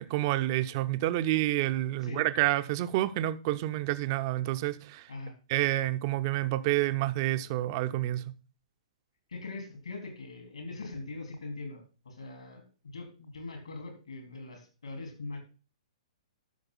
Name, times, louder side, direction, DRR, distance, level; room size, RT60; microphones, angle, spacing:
voice 1, 0.0-5.1 5.5-8.2, right 15 dB, 35° right, 0.7 m, -28 dB
voice 2, 9.3-11.8 12.1-15.4, left 3 dB, 70° left, 3.5 m, -41 dB
12.5 x 6.8 x 3.9 m
figure-of-eight pair, 115°, 3 cm